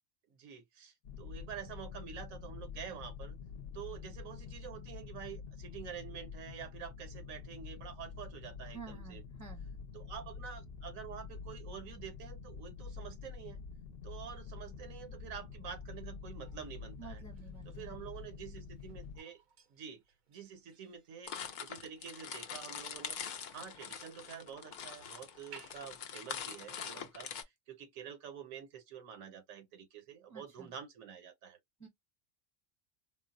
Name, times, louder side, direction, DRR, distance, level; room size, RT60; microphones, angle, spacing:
voice 1, 0.3-3.4 3.7-9.2 9.9-13.6 14.0-17.2 17.7-19.4 19.7-20.0 20.3-23.2 23.5-31.6, right 8 dB, 85° right, 1.1 m, -48 dB
sound 1, 1.0-19.2, left 5 dB, 60° left, 0.7 m, -47 dB
voice 2, 8.7-9.7 17.0-17.9 30.3-30.7 31.8-31.9, right 5 dB, 15° left, 0.7 m, -51 dB
sound 2, 16.4-26.0, right 5 dB, 55° right, 0.5 m, -62 dB
cookiecrack original, 21.3-27.4, left 7 dB, 90° left, 0.4 m, -44 dB
3.7 x 2.0 x 2.5 m
omnidirectional pair, 1.4 m